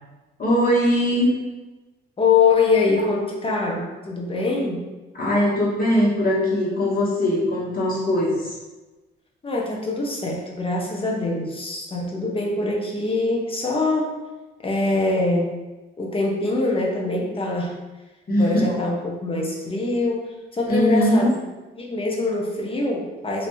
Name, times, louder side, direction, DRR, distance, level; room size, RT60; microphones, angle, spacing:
voice 1, 0.4-1.3 5.2-8.5 18.3-18.7 20.7-21.3, equal, 45° left, -5 dB, 1.4 m, -20 dB
voice 2, 2.2-4.8 9.4-14.2 14.6-15.5 16.0-17.7 18.4-21.3 21.7-23.5, left 3 dB, 25° left, -1 dB, 0.8 m, -23 dB
3.3 x 2.7 x 3.1 m, 1.1 s
cardioid pair, 90°, 20 cm